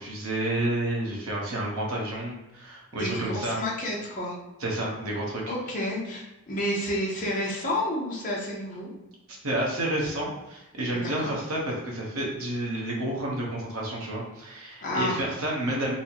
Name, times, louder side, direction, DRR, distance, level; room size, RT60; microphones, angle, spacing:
voice 1, 0.0-3.6 4.6-5.4 9.3-15.9, right 1 dB, 75° right, -2 dB, 1.0 m, -30 dB
voice 2, 2.9-4.4 5.5-8.9 10.9-11.3 14.8-15.2, left 1 dB, 35° left, -4 dB, 0.8 m, -30 dB
4.1 x 2.2 x 2.9 m, 0.99 s
head